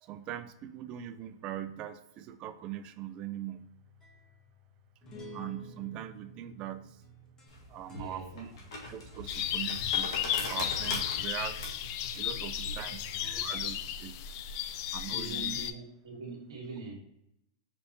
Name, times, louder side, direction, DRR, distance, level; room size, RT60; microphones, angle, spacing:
voice 1, 0.0-3.7 5.3-7.0 7.7-8.5 8.9-11.7 12.2-13.1 13.3-14.2 14.9-15.6, right 11 dB, 35° right, 11 dB, 0.4 m, -41 dB
sound 1, 3.6-9.9 10.3-10.6 13.0-14.0, equal, 20° left, 1.0 m, -53 dB
sound 2, 7.5-14.1, left 2 dB, 80° left, 1.5 m, -42 dB
voice 2, 7.9-8.3 11.1-11.2 12.3-12.4 12.6-13.0 13.3-13.4 15.1-16.9, right 4 dB, 85° right, -2 dB, 1.3 m, -43 dB
sound 3, 9.3-15.7, left 10 dB, 50° left, 0.3 m, -34 dB
5.1 x 3.3 x 2.7 m, 0.80 s
hypercardioid pair, 130°, 3 cm